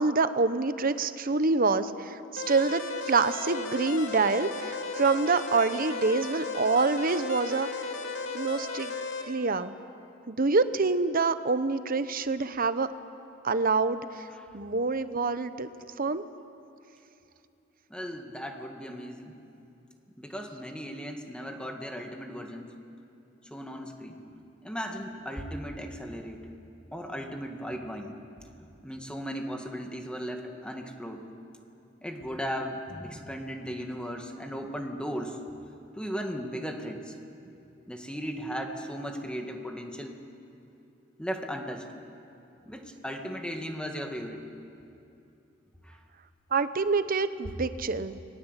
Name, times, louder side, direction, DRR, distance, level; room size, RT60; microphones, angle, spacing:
voice 1, 0.0-7.7 8.3-8.9 9.3-9.7 10.3-12.9 13.4-14.1 14.5-15.7 16.0-16.2 46.5-48.2, right 4 dB, 45° right, 12 dB, 1.0 m, -26 dB
sound 1, 2.4-9.2, left 4 dB, 75° left, 2.7 m, -35 dB
voice 2, 17.9-19.3 20.2-22.7 23.5-24.2 24.6-26.5 26.9-28.1 28.6-31.3 32.0-35.4 36.0-37.1 37.4-37.5 37.9-40.2 41.2-41.9 42.7-44.5 45.8-46.0, equal, 5° left, 3 dB, 2.1 m, -36 dB
29.5 x 21.0 x 8.3 m, 2.7 s
head